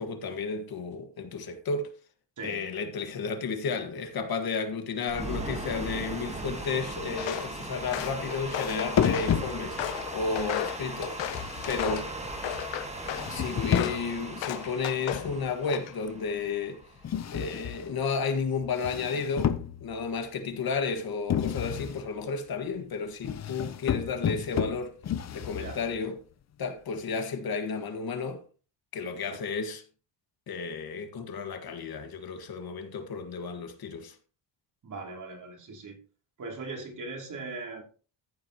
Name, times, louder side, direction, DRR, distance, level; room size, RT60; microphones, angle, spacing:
voice 1, 0.0-1.9 2.4-12.1 13.3-16.8 17.3-19.5 19.8-25.0 25.3-26.2 26.6-28.4 28.9-29.8 30.5-34.1, left 5 dB, 55° left, 1.7 m, -32 dB
sound 1, 5.1-17.2, right 2 dB, 15° right, 2.0 m, -38 dB
Walk footsteps, 7.1-7.5 7.9-9.4 9.8-12.1 12.4-13.3 13.7-14.0 14.4-15.3 15.6-16.1, left 13 dB, 80° left, 0.8 m, -35 dB
sound 2, 8.9-10.0 11.2-12.4 13.1-14.2 15.1-15.6 17.0-18.0 18.6-20.1 21.3-22.1 23.2-26.0, left 8 dB, 35° left, 0.7 m, -31 dB
voice 2, 34.8-36.0 36.4-37.8, right 3 dB, 45° right, 2.9 m, -39 dB
14.0 x 7.5 x 3.0 m
cardioid pair, 130°, 44 cm